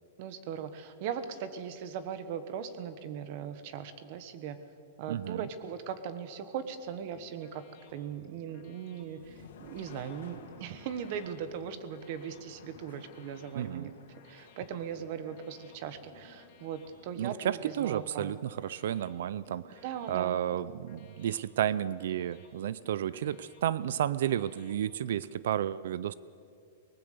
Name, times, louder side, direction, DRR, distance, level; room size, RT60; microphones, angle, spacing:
voice 1, 0.2-4.6 5.0-7.6 7.9-13.9 14.3-18.3 19.8-20.4, right 8 dB, 40° right, 11 dB, 1.3 m, -39 dB
voice 2, 5.1-5.5 13.5-13.9 17.2-19.8 20.1-26.1, right 10 dB, 65° right, 18 dB, 0.5 m, -32 dB
sound 1, 6.8-25.3, left 3 dB, 40° left, 4.4 m, -60 dB
sound 2, 8.9-20.8, left 6 dB, 70° left, 2.7 m, -57 dB
23.0 x 19.5 x 6.8 m, 2.5 s
supercardioid pair, 165°, 0 cm